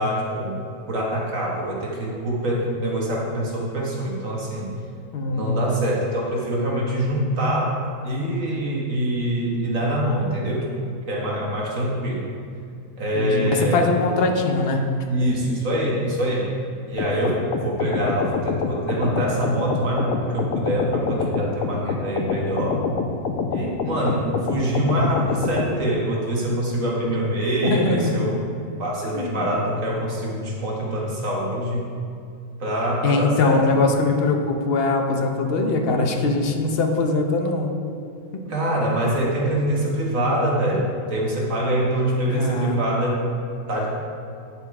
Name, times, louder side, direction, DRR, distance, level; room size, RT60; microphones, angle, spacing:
voice 1, 0.0-4.7 5.3-10.7 11.1-12.3 13.0-13.9 15.1-16.5 16.9-22.8 23.5-28.4 28.8-31.8 32.6-33.6 38.5-43.2 43.7-43.9, right 1 dB, 65° right, -3 dB, 1.9 m, -24 dB
voice 2, 5.1-5.6 13.1-14.8 27.6-28.1 29.0-29.5 33.0-37.7 38.3-38.4 42.3-42.8, left 3 dB, 50° left, 3 dB, 1.0 m, -22 dB
sound 1, 17.0-25.7, left 5 dB, 80° left, 1.1 m, -26 dB
9.3 x 5.5 x 4.7 m, 2.4 s
omnidirectional pair, 1.5 m